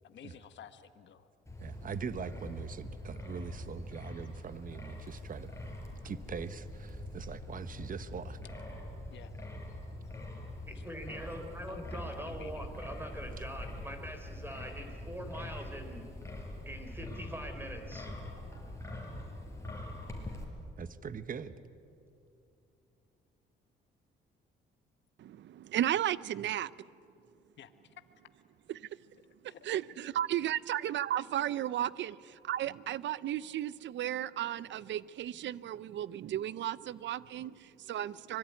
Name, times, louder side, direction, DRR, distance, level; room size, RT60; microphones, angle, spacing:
voice 1, 0.0-1.3 9.1-9.3 10.7-10.8 11.7-12.7 27.6-27.9 29.5-29.7 30.5-30.6, left 9 dB, 65° left, 10 dB, 1.3 m, -52 dB
Wind, 1.5-20.4, left 1 dB, 15° left, 5.6 m, -44 dB
voice 2, 1.6-5.5 6.0-8.4 20.8-21.5, right 6 dB, 45° right, 12 dB, 1.2 m, -41 dB
voice 3, 10.7-16.1 16.7-18.2, equal, 10° right, 5 dB, 3.7 m, -43 dB
voice 4, 25.2-26.7 28.7-28.9 29.4-38.4, right 12 dB, 65° right, 19 dB, 0.6 m, -34 dB
25.0 x 21.5 x 9.5 m, 2.5 s
cardioid pair, 90°, 20 cm